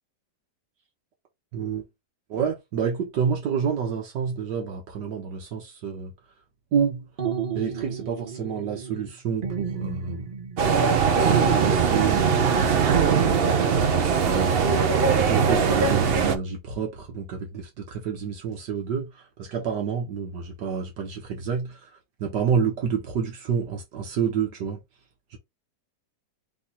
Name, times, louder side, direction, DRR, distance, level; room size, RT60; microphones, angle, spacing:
voice 1, 1.5-1.8 2.3-6.1 6.7-7.1 7.5-10.3 10.7-21.9 22.2-24.8 25.3-25.4, right 6 dB, 80° right, 1.6 m, -29 dB
sound 1, 7.2-9.1 9.4-10.9 11.2-12.6 12.9-14.3, right 6 dB, 35° right, 1.0 m, -31 dB
sound 2, 10.6-16.4, right 6 dB, 60° right, 0.6 m, -21 dB
3.6 x 3.3 x 4.1 m
omnidirectional pair, 1.8 m